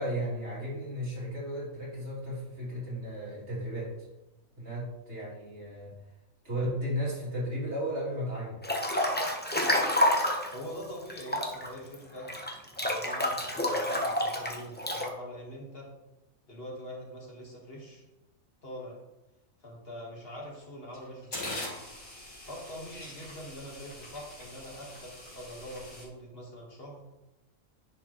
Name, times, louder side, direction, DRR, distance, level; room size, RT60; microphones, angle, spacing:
voice 1, 0.0-4.1 4.6-5.9 6.4-8.6, equal, 55° right, -7 dB, 3.2 m, -34 dB
Breathing / Bathtub (filling or washing) / Splash splatter, 8.6-10.5 11.1-15.1, left 1 dB, 10° left, 0.7 m, -28 dB
voice 2, 10.5-12.3 12.8-15.9 16.5-18.0 18.6-19.0 19.6-21.7 22.4-27.0, equal, 45° left, -2 dB, 1.7 m, -44 dB
sound 1, 20.4-20.6 20.9-26.0, left 1 dB, 85° left, 2.9 m, -43 dB
10.0 x 5.4 x 3.0 m, 1.0 s
omnidirectional pair, 1.4 m